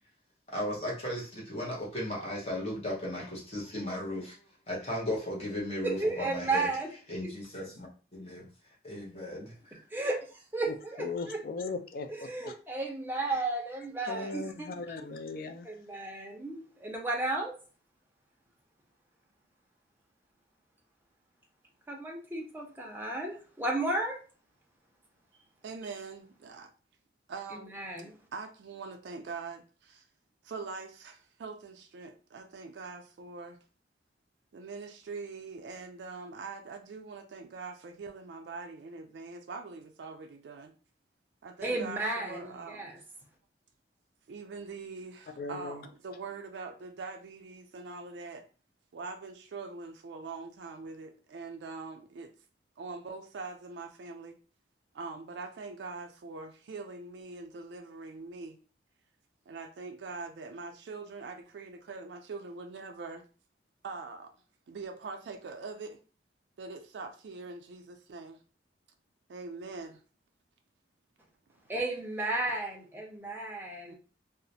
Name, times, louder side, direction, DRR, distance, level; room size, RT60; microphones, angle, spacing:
voice 1, 0.5-4.4 4.7-6.7 7.1-7.9 8.1-8.4 8.8-9.8, left 1 dB, 35° left, 0.7 m, -36 dB
voice 2, 5.8-6.9 9.9-11.4 12.1-14.7 15.0-15.2 15.6-17.5 21.9-24.2 27.5-28.1 41.6-43.0 71.7-73.9, right 2 dB, 10° right, 0.5 m, -34 dB
voice 3, 10.7-12.5 14.1-15.7 45.4-45.9, left 3 dB, 55° left, 0.3 m, -38 dB
voice 4, 25.6-26.7 27.3-27.8 28.3-30.0 30.4-33.6 34.5-40.7 41.4-42.9 44.3-48.4 48.9-52.3 52.8-54.4 54.9-58.6 59.5-63.2 63.8-64.3 64.7-66.0 66.6-68.4 69.3-70.0 73.9-74.0, right 4 dB, 85° right, 0.4 m, -43 dB
2.3 x 2.0 x 2.6 m
head